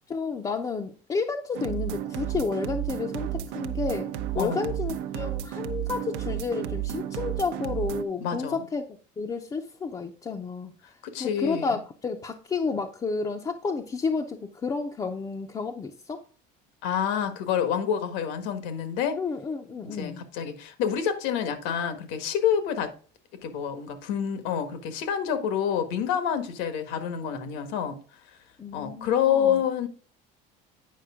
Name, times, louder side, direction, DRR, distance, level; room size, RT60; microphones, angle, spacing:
voice 1, 0.1-4.1 4.3-8.8 9.2-10.7 11.2-16.2 19.1-20.2 28.6-29.5, left 4 dB, 20° left, 0.6 m, -31 dB
sound 1, 1.5-8.0, right 11 dB, 85° right, 0.8 m, -32 dB
voice 2, 4.4-4.8 8.2-8.6 11.0-11.8 16.8-19.2 19.8-22.9 23.4-28.0 28.7-29.9, left 8 dB, 80° left, 1.5 m, -28 dB
9.3 x 5.2 x 3.6 m
cardioid pair, 150°, 19 cm